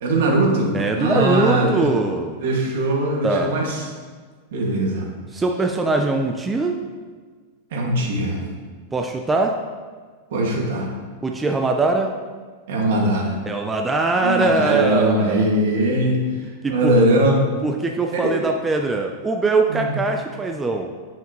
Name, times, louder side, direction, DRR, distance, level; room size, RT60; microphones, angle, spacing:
voice 1, 0.0-1.9 2.4-3.9 4.5-5.1 7.7-8.4 10.3-10.9 12.7-13.4 14.2-16.2 16.7-17.4 18.1-18.3 19.7-20.0, right 1 dB, 70° right, -1 dB, 1.9 m, -20 dB
voice 2, 0.7-2.4 3.2-3.6 5.3-6.8 8.9-9.6 11.2-12.1 13.5-15.5 16.6-16.9 17.6-20.9, right 3 dB, 10° right, 3 dB, 0.4 m, -21 dB
9.7 x 5.9 x 3.0 m, 1.5 s
supercardioid pair, 155°, 0 cm